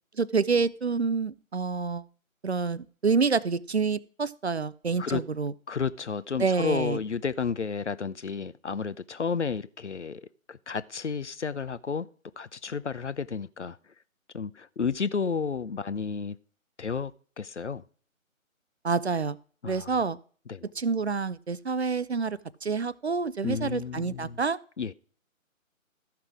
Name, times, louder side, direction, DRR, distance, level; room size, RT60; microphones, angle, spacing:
voice 1, 0.2-2.0 2.4-5.5 6.4-7.0 18.8-19.4 19.7-20.2 20.8-24.6, right 4 dB, 50° right, 0.5 m, -27 dB
voice 2, 5.7-12.1 12.4-13.8 14.3-16.4 16.8-17.1 17.4-17.8 19.6-20.0 20.5-20.6 23.4-24.4 24.8-24.9, left 5 dB, 60° left, 0.6 m, -32 dB
13.5 x 5.9 x 4.8 m
figure-of-eight pair, 150°, 41 cm